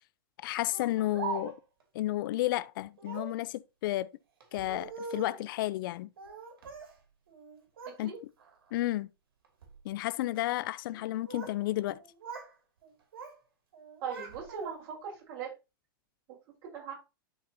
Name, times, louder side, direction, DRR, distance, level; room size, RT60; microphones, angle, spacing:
voice 1, 0.4-1.5 1.9-4.1 4.5-6.1 8.0-8.1 8.7-9.1 9.8-12.0, left 16 dB, 65° left, 0.5 m, -32 dB
Speech, 0.7-1.8 3.0-3.4 4.4-5.5 6.2-7.0 7.3-8.0 8.4-8.8 9.4-9.8 10.9-11.6 11.9-12.5 12.8-13.4 13.7-15.0, right 5 dB, 80° right, 2.8 m, -43 dB
voice 2, 14.0-15.5 16.6-16.9, right 6 dB, 50° right, 4.7 m, -39 dB
11.5 x 4.1 x 2.9 m
hypercardioid pair, 125°, 12 cm